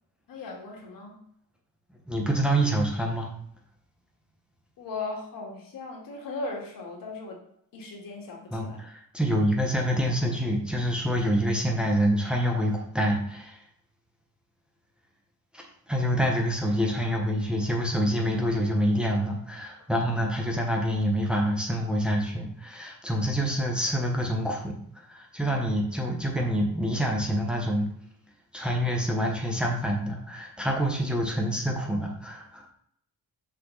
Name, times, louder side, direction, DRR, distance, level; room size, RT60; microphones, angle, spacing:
voice 1, 0.3-1.2 4.8-7.4 7.7-8.8, left 3 dB, 75° left, 0 dB, 2.2 m, -37 dB
voice 2, 2.1-3.3 8.5-13.6 15.5-27.9 28.5-32.7, equal, 5° right, -1 dB, 1.2 m, -27 dB
6.1 x 5.6 x 4.0 m, 0.68 s
cardioid pair, 140°, 34 cm